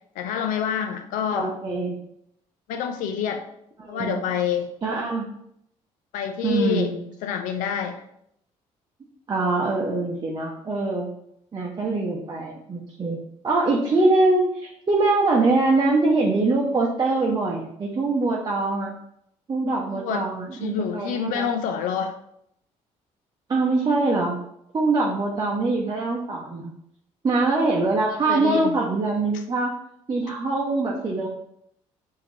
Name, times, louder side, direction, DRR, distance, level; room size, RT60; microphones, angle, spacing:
voice 1, 0.2-1.5 2.7-3.4 3.9-4.7 6.1-6.9 7.2-8.0 19.9-20.3 20.6-22.1 28.3-28.8, left 8 dB, 80° left, 5 dB, 0.6 m, -27 dB
voice 2, 1.3-2.0 3.8-4.2 4.8-5.3 6.4-7.0 9.3-11.1 11.5-13.2 13.4-18.9 19.5-21.5 23.5-24.4 24.7-26.7 27.2-29.8 30.1-31.3, right 3 dB, 30° right, -2 dB, 0.8 m, -23 dB
4.9 x 2.8 x 3.2 m, 0.74 s
supercardioid pair, 80°, 13 cm